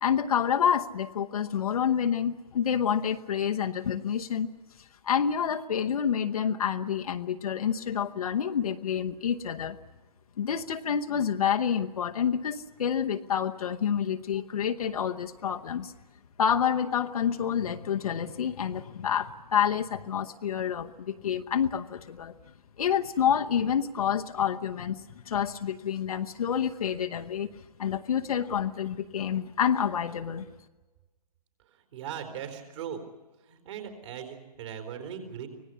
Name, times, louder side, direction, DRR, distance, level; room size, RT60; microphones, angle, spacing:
voice 1, 0.0-4.5 5.0-9.8 10.4-15.9 16.4-22.3 22.8-27.5 27.8-30.4, left 8 dB, 60° left, 6 dB, 0.9 m, -28 dB
voice 2, 31.7-33.0 33.4-35.5, right 8 dB, 45° right, 6 dB, 4.1 m, -39 dB
25.0 x 18.0 x 8.4 m, 1.2 s
figure-of-eight pair, 135°, 21 cm